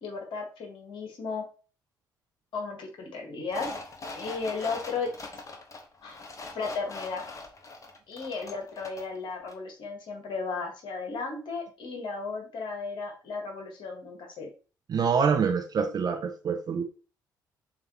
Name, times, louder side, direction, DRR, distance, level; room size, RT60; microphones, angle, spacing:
voice 1, 0.0-1.4 2.5-3.7 4.1-5.1 6.0-6.2 6.5-7.2 8.1-14.5, left 4 dB, 55° left, 2 dB, 1.5 m, -35 dB
sound 1, 3.5-9.2 9.5-9.6, left 3 dB, 30° left, 1.0 m, -42 dB
voice 2, 14.9-16.8, right 6 dB, 40° right, 5 dB, 0.5 m, -26 dB
6.6 x 2.7 x 2.8 m, 0.35 s
figure-of-eight pair, 45°, 10 cm